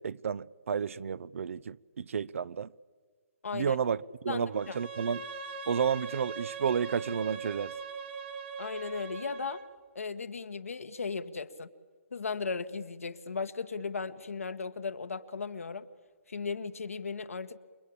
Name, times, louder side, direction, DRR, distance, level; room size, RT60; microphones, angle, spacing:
voice 1, 0.0-2.7 3.5-4.0 4.2-5.2 5.7-7.7, right 7 dB, 70° right, 0.7 m, -31 dB
voice 2, 3.4-3.8 4.3-4.8 8.6-9.6 9.9-11.7 12.1-15.9 16.3-17.6, left 5 dB, 85° left, 1.6 m, -36 dB
Bowed string instrument, 4.5-9.7, right 5 dB, 50° right, 2.4 m, -41 dB
28.5 x 22.0 x 8.8 m
hypercardioid pair, 145°, 7 cm